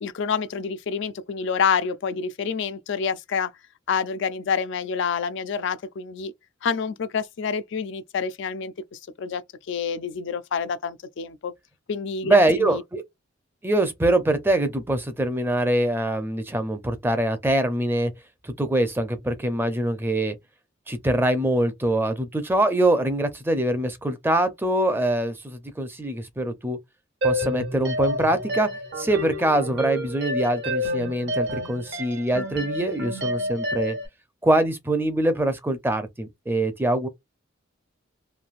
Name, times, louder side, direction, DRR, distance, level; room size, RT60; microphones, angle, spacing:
voice 1, 0.0-3.5 3.9-6.3 6.6-9.4 9.7-11.5 11.9-12.8, left 6 dB, 65° left, 0.4 m, -28 dB
voice 2, 12.2-13.0 13.6-18.1 18.4-20.4 20.9-26.8 27.2-28.7 29.0-34.0 34.4-37.1, right 1 dB, 10° right, 0.5 m, -23 dB
sound 1, 27.2-34.1, left 1 dB, 60° right, 1.0 m, -29 dB
3.2 x 2.5 x 2.4 m
head